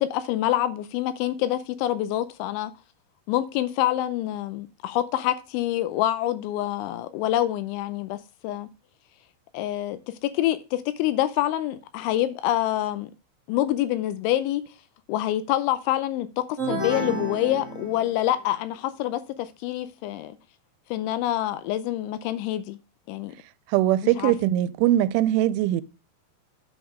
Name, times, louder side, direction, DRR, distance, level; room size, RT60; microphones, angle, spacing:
voice 1, 0.0-2.7 3.3-8.2 8.4-8.7 9.5-13.1 13.5-14.6 15.1-20.3 20.9-22.8 23.1-23.3 24.2-24.4, left 13 dB, 85° left, 2.9 m, -26 dB
sound 1, 16.6-18.4, right 1 dB, 50° right, 0.9 m, -31 dB
voice 2, 23.7-25.8, right 13 dB, 85° right, 3.0 m, -21 dB
8.0 x 5.1 x 4.9 m
omnidirectional pair, 5.5 m